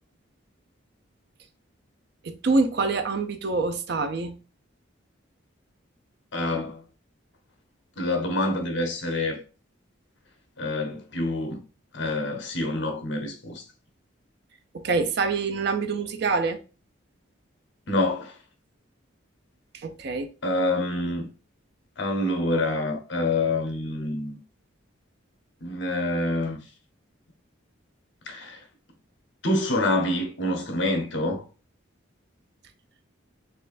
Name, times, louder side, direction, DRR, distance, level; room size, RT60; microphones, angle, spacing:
voice 1, 2.2-4.4 14.7-16.6 19.7-20.3, right 4 dB, 55° right, 0.4 m, -26 dB
voice 2, 6.3-6.8 8.0-9.4 10.6-11.6 11.9-13.6 17.9-18.3 20.4-21.3 22.0-24.4 25.6-26.6 28.3-28.6 29.4-31.4, left 2 dB, 60° left, 0.8 m, -26 dB
4.2 x 2.5 x 2.5 m
head